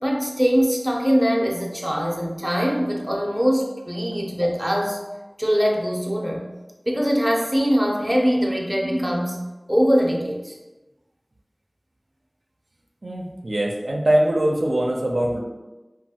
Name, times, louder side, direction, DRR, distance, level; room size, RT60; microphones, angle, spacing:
voice 1, 0.0-5.0 5.4-6.4 6.9-9.4 9.7-10.6, equal, 10° right, -1 dB, 0.5 m, -22 dB
voice 2, 13.0-15.4, right 1 dB, 80° right, 0 dB, 0.4 m, -22 dB
3.0 x 2.3 x 2.7 m, 1.1 s
wide cardioid pair, 45°, 0 cm